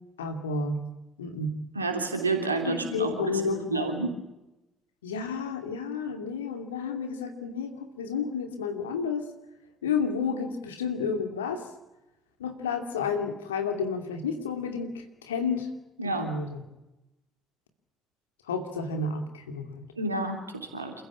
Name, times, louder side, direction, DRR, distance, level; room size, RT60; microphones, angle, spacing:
voice 1, 0.2-0.8 1.2-1.6 2.7-4.1 5.0-9.3 9.8-11.6 12.4-15.7 16.0-16.6 18.5-19.9, left 5 dB, 80° left, 5 dB, 2.6 m, -31 dB
voice 2, 1.7-4.1 16.0-16.3 20.0-20.9, right 3 dB, 85° right, 4 dB, 3.2 m, -30 dB
28.0 x 15.0 x 8.5 m, 0.95 s
figure-of-eight pair, 45°, 0 cm